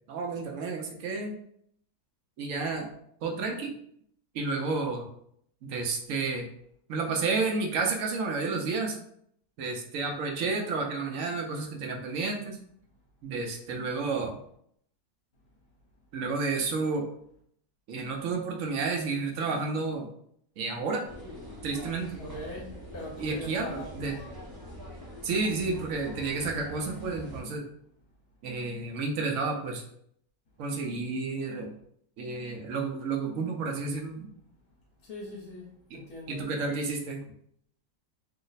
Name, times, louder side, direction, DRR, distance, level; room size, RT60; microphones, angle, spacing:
voice 1, 0.1-1.4 2.4-2.9 3.2-3.7 4.3-5.1 5.6-6.5 6.9-9.0 9.6-12.6 13.2-14.4 16.1-17.1 17.9-20.1 20.6-21.1 21.6-22.2 23.1-24.1 25.2-27.6 28.4-29.8 30.6-31.7 32.2-34.3 35.9-36.0 36.3-37.2, right 4 dB, 65° right, 2 dB, 0.9 m, -31 dB
sound 1, 21.0-27.4, equal, 25° right, 0.4 m, -44 dB
voice 2, 22.2-22.7 22.9-24.1 35.0-36.4, left 1 dB, 65° left, -4 dB, 1.2 m, -41 dB
3.1 x 2.0 x 3.9 m, 0.68 s
omnidirectional pair, 1.7 m